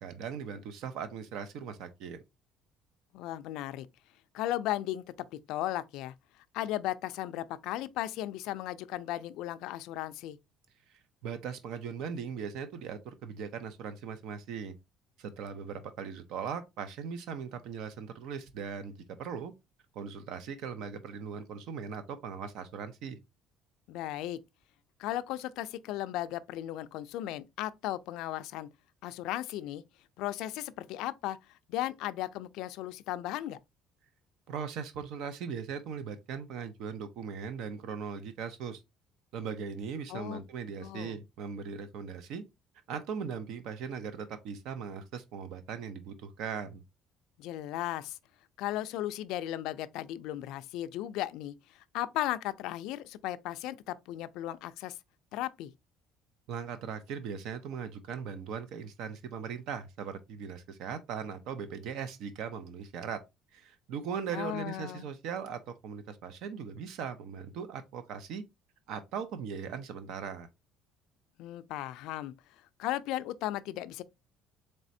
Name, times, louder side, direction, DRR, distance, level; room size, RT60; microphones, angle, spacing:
voice 1, 0.0-2.2 10.9-14.8 15.2-19.5 19.9-23.2 34.5-38.8 39.3-42.4 42.9-46.8 56.5-63.2 63.5-68.4 68.9-70.5, right 6 dB, 70° right, 0.5 m, -39 dB
voice 2, 3.1-3.9 4.3-5.0 5.5-6.1 6.5-10.4 23.9-24.4 25.0-28.7 29.0-29.8 30.2-31.4 31.7-33.6 40.1-40.4 40.8-41.1 47.4-48.2 48.6-55.0 55.3-55.7 64.3-65.1 71.4-72.3 72.8-74.0, left 14 dB, 75° left, 0.3 m, -36 dB
4.1 x 3.2 x 2.6 m
cardioid pair, 140°, 0 cm